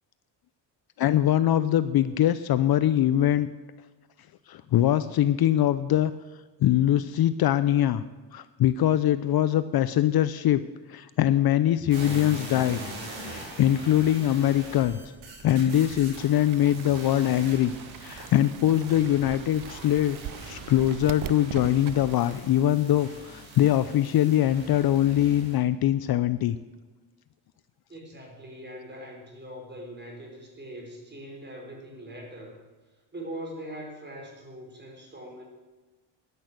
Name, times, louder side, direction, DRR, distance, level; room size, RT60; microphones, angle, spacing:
voice 1, 1.0-3.5 4.5-6.1 6.6-8.0 8.3-10.6 10.9-12.8 13.2-15.0 15.4-17.7 18.0-20.2 20.4-26.6, left 12 dB, 50° left, 14 dB, 0.6 m, -23 dB
sound 1, 11.9-25.6, right 1 dB, 80° right, 4.7 m, -42 dB
Fowl / Bird, 16.3-22.2, right 13 dB, 45° right, 0.5 m, -41 dB
voice 2, 27.9-32.6 33.1-35.4, right 1 dB, 20° right, 0 dB, 4.9 m, -41 dB
10.5 x 10.5 x 8.0 m, 1.3 s
cardioid pair, 110°, 47 cm